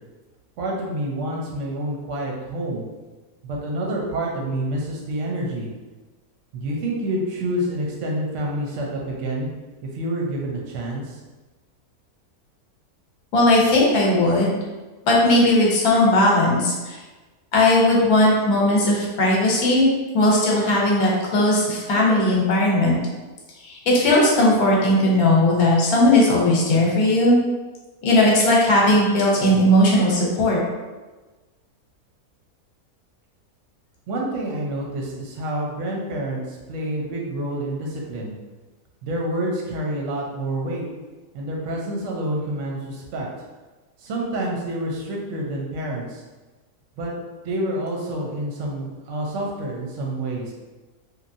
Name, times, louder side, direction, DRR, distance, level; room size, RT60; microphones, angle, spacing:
voice 1, 0.6-2.8 3.4-5.7 6.5-9.5 9.9-11.2 34.1-38.3 39.0-40.8 41.3-43.3 44.0-46.2 47.0-47.1 47.4-50.5, right 1 dB, 60° right, -2 dB, 0.9 m, -28 dB
voice 2, 13.3-14.6 15.0-17.0 17.5-19.9 20.1-23.0 23.6-27.4 28.0-30.6, left 1 dB, 75° left, -3 dB, 1.2 m, -17 dB
3.1 x 2.4 x 2.6 m, 1.2 s
omnidirectional pair, 1.6 m